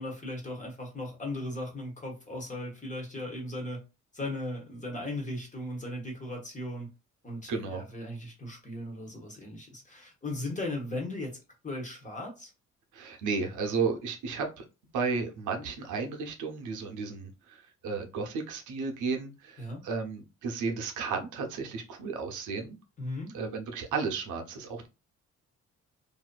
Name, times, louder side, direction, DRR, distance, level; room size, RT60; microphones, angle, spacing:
voice 1, 0.0-3.8 4.1-6.9 7.2-11.4 11.6-12.5 19.6-19.8 23.0-23.3, left 1 dB, 25° left, 1.2 m, -37 dB
voice 2, 7.5-7.8 12.9-14.7 14.9-22.8 23.3-24.9, right 4 dB, 80° right, 0.7 m, -33 dB
2.6 x 2.4 x 2.2 m
cardioid pair, 90°, 30 cm